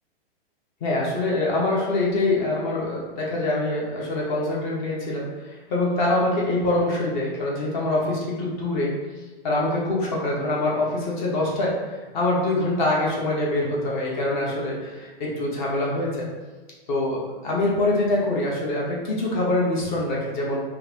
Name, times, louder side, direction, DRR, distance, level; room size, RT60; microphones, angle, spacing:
voice 1, 0.8-8.9 9.4-16.3 16.9-20.6, left 2 dB, 50° left, -3 dB, 1.0 m, -24 dB
3.9 x 2.5 x 2.9 m, 1.3 s
hypercardioid pair, 150°, 30 cm